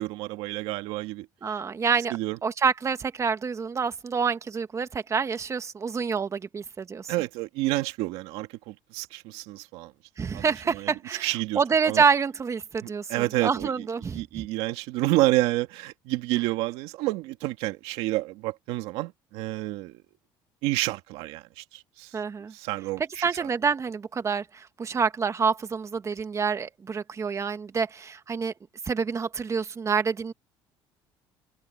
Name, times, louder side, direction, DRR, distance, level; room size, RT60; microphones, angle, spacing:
voice 1, 0.0-1.6 2.1-2.4 7.1-9.9 10.3-10.9 11.2-12.0 12.8-13.8 14.1-20.0 20.6-22.1 22.5-23.5, right 18 dB, 85° right, 1.9 m, -29 dB
voice 2, 1.4-7.1 10.2-11.3 11.5-14.4 22.1-22.5 23.2-28.5 28.9-30.3, right 5 dB, 30° right, 1.8 m, -27 dB
cardioid pair, 100°, 10 cm